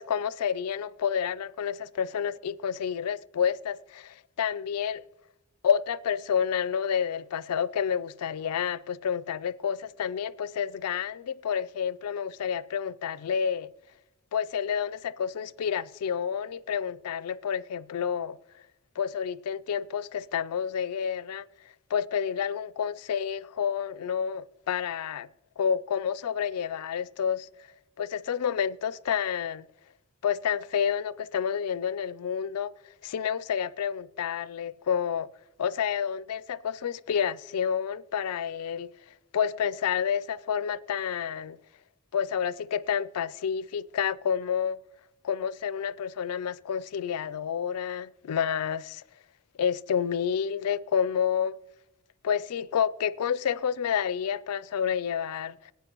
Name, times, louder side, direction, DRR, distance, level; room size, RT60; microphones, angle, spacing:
voice 1, 0.0-5.0 5.6-13.7 14.3-18.4 19.0-21.4 21.9-25.3 25.6-27.5 28.0-29.7 30.2-32.7 33.0-35.3 35.6-38.9 39.3-41.6 42.1-44.8 45.2-49.0 49.6-51.6 52.2-55.7, left 7 dB, 85° left, 0.4 m, -29 dB
18.0 x 9.0 x 2.9 m
head